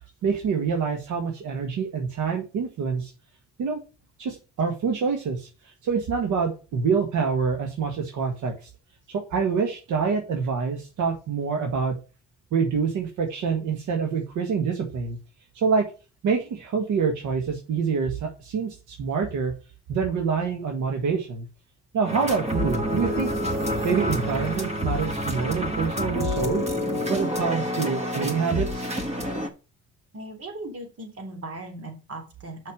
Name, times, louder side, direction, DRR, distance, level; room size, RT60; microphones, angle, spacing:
voice 1, 0.2-3.1 3.6-3.8 4.2-8.7 9.1-12.0 12.5-15.2 15.5-15.8 16.2-19.5 19.9-21.5 21.9-23.3 23.8-26.6 27.1-28.9, right 5 dB, 80° right, 3 dB, 1.8 m, -26 dB
sound 1, 22.0-29.5, equal, 20° right, 1.8 m, -28 dB
voice 2, 30.1-32.6, right 2 dB, 50° right, 5 dB, 3.5 m, -38 dB
6.1 x 5.8 x 6.3 m, 0.32 s
cardioid pair, 90°, 30 cm